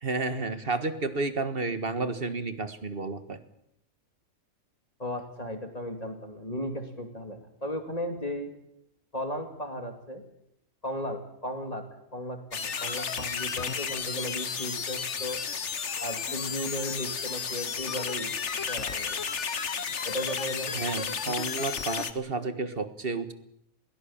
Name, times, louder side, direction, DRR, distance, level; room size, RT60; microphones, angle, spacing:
voice 1, 0.0-3.4 20.7-23.3, right 3 dB, 45° right, 10 dB, 1.7 m, -31 dB
voice 2, 5.0-8.5 9.1-10.2 10.8-11.8 12.1-15.4 16.0-18.3 18.7-19.2 20.0-20.8, left 1 dB, 25° left, 5 dB, 2.6 m, -35 dB
sound 1, 12.5-22.1, left 6 dB, 55° left, 1.6 m, -33 dB
22.0 x 18.0 x 8.7 m, 0.76 s
omnidirectional pair, 1.4 m